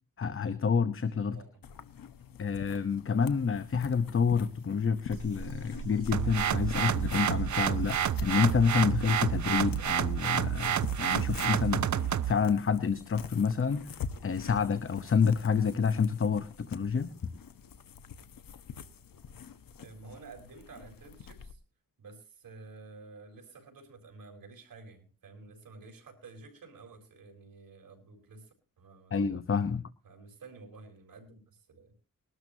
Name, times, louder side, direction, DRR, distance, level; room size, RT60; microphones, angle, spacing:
voice 1, 0.2-1.4 2.4-17.3 29.1-29.9, left 6 dB, 40° left, 11 dB, 0.8 m, -28 dB
sound 1, 1.6-21.5, left 7 dB, 80° left, 1.1 m, -45 dB
sound 2, 5.1-10.1, right 3 dB, 40° right, 4.4 m, -44 dB
sound 3, 6.1-12.3, right 10 dB, 55° right, 0.6 m, -29 dB
voice 2, 19.8-21.6 22.0-29.1 30.0-31.9, right 3 dB, 80° right, 2 dB, 4.3 m, -51 dB
20.5 x 12.5 x 2.8 m, 0.33 s
wide cardioid pair, 115°, 34 cm